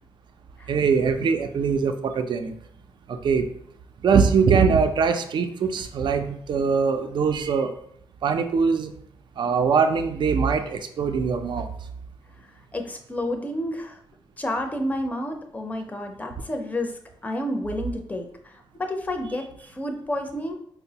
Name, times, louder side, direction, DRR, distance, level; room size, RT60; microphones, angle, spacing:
voice 1, 0.7-2.5 3.1-3.5 4.0-7.7 8.2-8.9 9.4-11.7, right 5 dB, 55° right, 7 dB, 0.4 m, -22 dB
voice 2, 12.7-14.0 14.4-20.5, left 1 dB, 15° left, 4 dB, 0.5 m, -30 dB
4.4 x 2.0 x 2.8 m, 0.67 s
cardioid pair, 75°, 9 cm